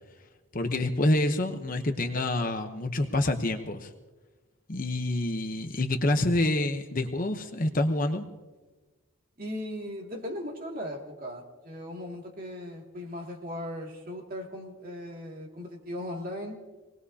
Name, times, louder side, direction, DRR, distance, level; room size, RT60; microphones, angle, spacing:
voice 1, 0.5-3.9 4.7-8.3, left 1 dB, 40° left, 6 dB, 0.9 m, -27 dB
voice 2, 9.4-16.6, left 1 dB, 45° right, 0 dB, 2.4 m, -38 dB
26.0 x 19.5 x 2.8 m, 1.2 s
head